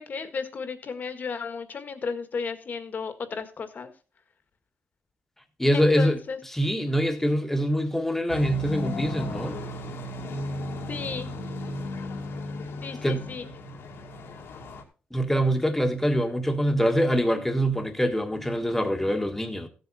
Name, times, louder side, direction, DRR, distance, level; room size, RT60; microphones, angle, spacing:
voice 1, 0.0-3.9 5.7-6.4 10.9-11.3 12.8-13.5, left 5 dB, 45° left, 1.7 m, -34 dB
voice 2, 5.6-6.2 6.5-9.6 13.0-13.3 15.1-19.7, equal, 5° left, 1.6 m, -24 dB
sound 1, 8.3-14.8, left 2 dB, 85° left, 2.4 m, -35 dB
15.0 x 8.0 x 4.2 m
wide cardioid pair, 135°, 4 cm